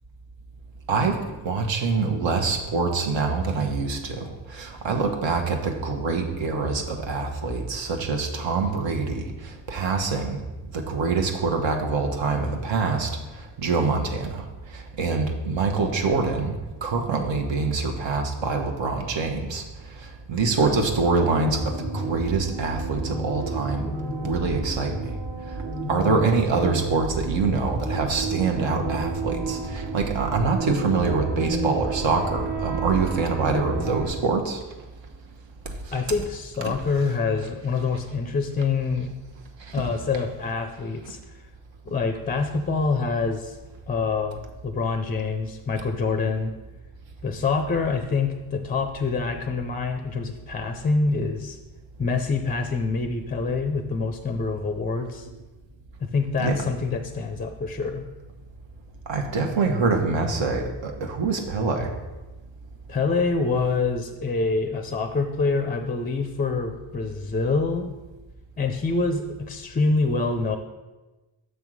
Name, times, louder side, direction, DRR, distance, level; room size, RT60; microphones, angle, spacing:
voice 1, 1.4-9.3 9.7-10.4 10.9-13.1 13.6-14.4 15.0-16.5 16.8-19.6 20.3-21.6 21.9-23.8 24.2-25.1 25.9-34.6 36.6-36.7 56.4-56.6 59.1-61.9, right 4 dB, 70° right, 3 dB, 1.1 m, -25 dB
sound 1, 21.3-34.1, right 3 dB, 45° right, 1.5 m, -31 dB
voice 2, 35.9-39.1 39.7-41.4 41.9-43.6 43.9-46.5 47.2-51.6 52.0-55.3 56.0-58.1 62.9-67.9 68.6-70.6, left 4 dB, 20° left, 6 dB, 0.4 m, -26 dB
6.4 x 3.5 x 6.1 m, 1.1 s
cardioid pair, 90°, 47 cm